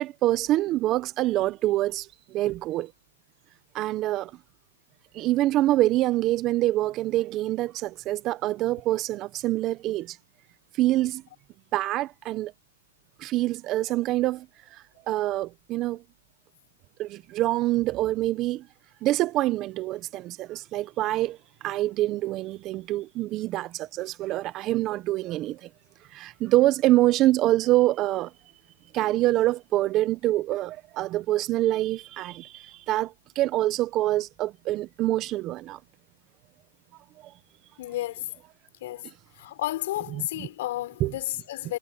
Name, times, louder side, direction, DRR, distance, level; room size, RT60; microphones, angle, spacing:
voice 1, 0.0-2.9 3.7-4.3 5.1-10.2 10.7-11.2 11.7-12.5 13.2-14.5 14.7-16.0 17.0-18.7 19.0-21.4 21.6-25.7 26.1-28.3 28.9-35.8 37.2-37.3 40.1-40.5 41.0-41.1, right 16 dB, 25° right, 0.7 m, -25 dB
voice 2, 37.8-38.3 38.8-39.1 39.4-41.8, left 15 dB, 45° left, 5.1 m, -32 dB
hypercardioid pair, 155°, 0 cm